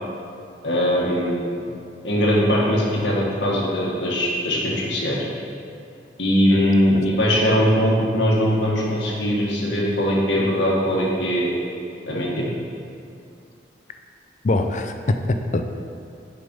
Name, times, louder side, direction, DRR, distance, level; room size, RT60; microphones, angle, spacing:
voice 1, 0.6-1.4 2.0-5.3 6.2-11.5 12.1-12.4, equal, 90° left, -3 dB, 1.5 m, -20 dB
voice 2, 14.4-15.6, left 2 dB, 40° left, 6 dB, 0.4 m, -22 dB
6.7 x 5.0 x 5.3 m, 2.5 s
head